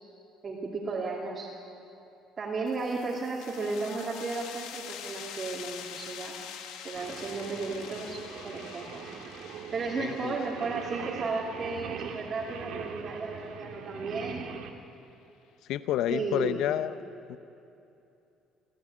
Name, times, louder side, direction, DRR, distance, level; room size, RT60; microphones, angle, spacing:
voice 1, 0.4-1.5 2.4-6.4 6.8-9.1 9.7-14.4 16.1-16.7, right 3 dB, 25° right, -5 dB, 2.6 m, -34 dB
sound 1, 2.7-14.0, left 8 dB, 85° left, 1.7 m, -46 dB
Singing, 7.0-14.7, right 7 dB, 65° right, 1.9 m, -42 dB
voice 2, 10.0-10.3 15.7-17.0 17.3-17.4, left 12 dB, 70° left, 12 dB, 0.7 m, -29 dB
29.5 x 14.0 x 9.9 m, 2.8 s
cardioid pair, 160°, 0 cm